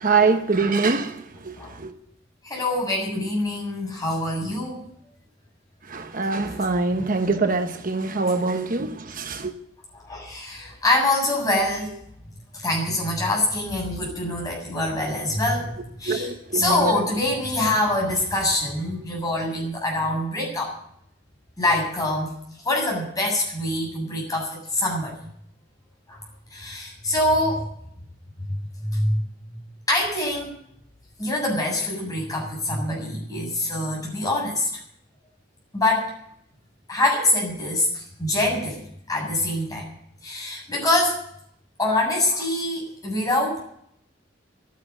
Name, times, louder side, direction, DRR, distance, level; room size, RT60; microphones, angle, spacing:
voice 1, 0.0-1.9 5.9-9.5 16.1-17.0, right 4 dB, 50° right, 1.0 m, -24 dB
voice 2, 2.4-4.8 6.9-7.0 9.9-12.0 12.5-20.7 21.6-22.3 22.6-25.1 26.1-26.2 26.5-27.7 28.5-29.3 29.9-30.5 31.2-34.7 35.7-36.1 36.9-38.8 39.1-39.9 40.2-41.2 41.8-43.6, left 1 dB, 20° left, 7.4 m, -25 dB
12.0 x 10.5 x 9.8 m
head